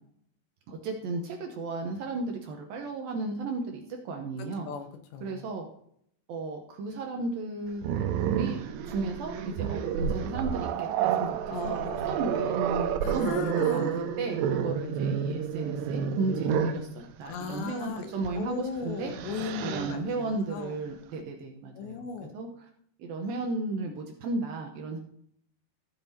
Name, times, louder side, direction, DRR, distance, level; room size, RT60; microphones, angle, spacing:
voice 1, 0.7-4.7 5.2-5.7 6.3-7.8 8.4-8.6 8.8-11.8 12.1-19.1 19.6-22.0 22.3-22.5 23.0-25.0, right 3 dB, 70° right, 2 dB, 2.4 m, -34 dB
voice 2, 4.4-5.5 11.5-12.2 13.0-14.0 17.3-20.8 21.8-22.4, left 6 dB, 80° left, 6 dB, 3.3 m, -38 dB
Growling, 7.8-16.9 18.2-18.4 18.8-20.0, right 8 dB, 90° right, 2.9 m, -30 dB
14.5 x 8.5 x 2.8 m, 0.67 s
omnidirectional pair, 5.0 m